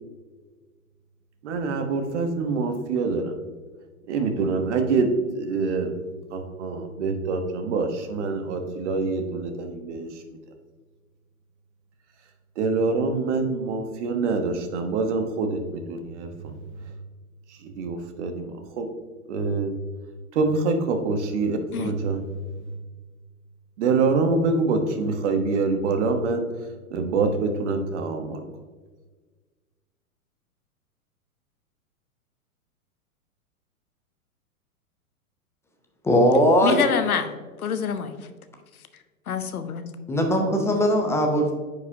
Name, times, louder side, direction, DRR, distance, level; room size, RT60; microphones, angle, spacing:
voice 1, 1.4-3.4 4.1-5.9 6.3-10.4 12.6-16.9 17.5-18.9 19.3-19.7 20.3-22.3 23.8-26.5 26.9-28.4, right 4 dB, 50° right, 6 dB, 1.1 m, -25 dB
voice 2, 36.0-36.8 40.1-41.5, equal, 5° left, 3 dB, 0.5 m, -19 dB
voice 3, 36.6-38.2 39.3-39.9 40.5-40.6, left 7 dB, 75° left, 9 dB, 0.8 m, -26 dB
9.4 x 5.0 x 2.7 m, 1.4 s
figure-of-eight pair, 105°, 44 cm